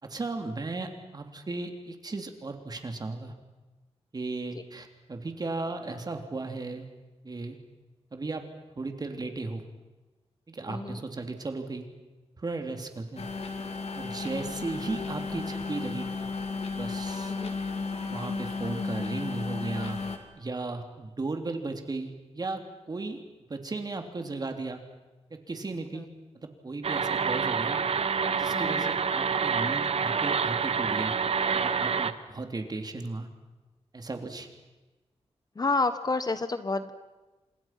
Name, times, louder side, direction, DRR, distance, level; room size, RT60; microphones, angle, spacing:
voice 1, 0.0-3.3 4.1-6.9 7.2-7.6 8.1-8.5 8.7-9.6 10.5-11.9 12.4-13.3 13.9-16.2 16.7-17.3 18.1-20.0 20.3-23.2 23.5-24.8 25.3-26.1 26.3-27.8 28.4-31.1 31.6-33.3 33.9-34.5, right 3 dB, 35° right, 5 dB, 3.2 m, -35 dB
voice 2, 10.7-11.0 14.3-14.4 17.3-17.5 26.0-26.1 28.2-28.9 35.5-36.9, left 3 dB, 35° left, 11 dB, 1.4 m, -30 dB
sound 1, 13.2-20.2, left 4 dB, 70° left, 3.3 m, -34 dB
sound 2, 26.8-32.1, right 6 dB, 60° right, 1.1 m, -27 dB
30.0 x 26.5 x 6.0 m, 1.2 s
wide cardioid pair, 125°, 11 cm